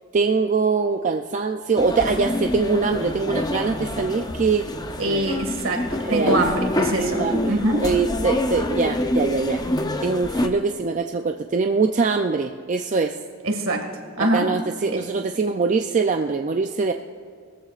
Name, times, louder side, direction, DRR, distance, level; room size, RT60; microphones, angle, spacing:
voice 1, 0.1-4.7 6.0-6.7 7.0-9.6 10.0-13.1 14.2-16.9, right 4 dB, 35° right, 5 dB, 0.4 m, -23 dB
sound 1, 1.8-10.5, left 1 dB, 20° left, 0.6 m, -26 dB
voice 2, 5.0-5.8 6.1-7.8 13.4-13.8 14.2-14.5 14.9-15.0, right 1 dB, 65° right, 3 dB, 2.0 m, -23 dB
20.0 x 14.0 x 2.5 m, 2.1 s
head